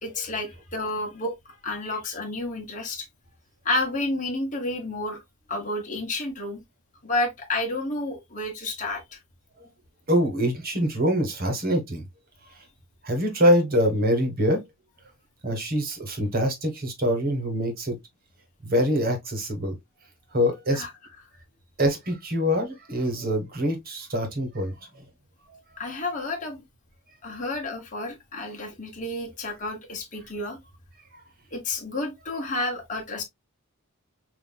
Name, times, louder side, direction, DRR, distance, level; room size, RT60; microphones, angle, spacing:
voice 1, 0.0-1.3 1.6-3.1 3.6-5.2 5.5-6.6 7.0-9.2 20.7-20.9 25.8-26.6 27.2-30.6 31.5-33.2, left 2 dB, 35° left, 1.4 m, -30 dB
voice 2, 10.1-12.0 12.5-12.6 13.0-14.6 15.4-18.0 18.6-19.8 20.3-20.8 21.8-25.0 25.5-25.6, equal, 40° right, 1.4 m, -24 dB
5.6 x 2.9 x 2.3 m
head